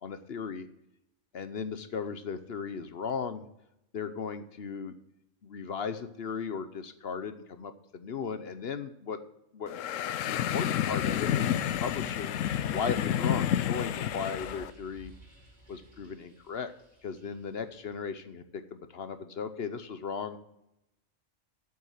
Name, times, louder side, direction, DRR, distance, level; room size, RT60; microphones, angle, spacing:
voice 1, 0.0-0.7 1.3-3.5 3.9-4.9 5.4-9.2 9.5-9.7 10.2-12.4 12.7-15.1 15.7-16.7 17.0-20.4, left 6 dB, 60° left, 11 dB, 1.0 m, -36 dB
sound 1, 9.7-14.7, left 10 dB, 90° left, 1.0 m, -30 dB
sound 2, 10.8-17.9, right 1 dB, 55° right, 5.3 m, -53 dB
8.3 x 7.9 x 7.4 m, 0.83 s
omnidirectional pair, 1.3 m